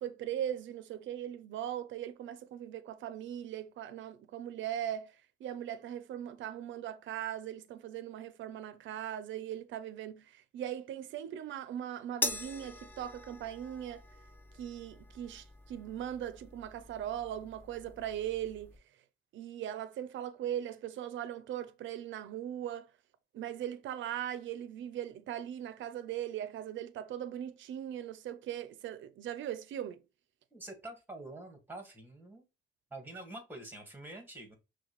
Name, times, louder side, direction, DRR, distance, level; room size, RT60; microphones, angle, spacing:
voice 1, 0.0-5.1 5.4-10.2 10.5-14.0 14.6-18.8 19.3-22.9 23.3-30.0, right 10 dB, 70° right, 0.5 m, -39 dB
sound 1, 12.2-18.8, left 2 dB, 10° left, 0.7 m, -43 dB
voice 2, 30.5-32.4 32.9-34.6, right 2 dB, 10° right, 1.5 m, -46 dB
5.7 x 2.3 x 3.0 m
cardioid pair, 90°, 20 cm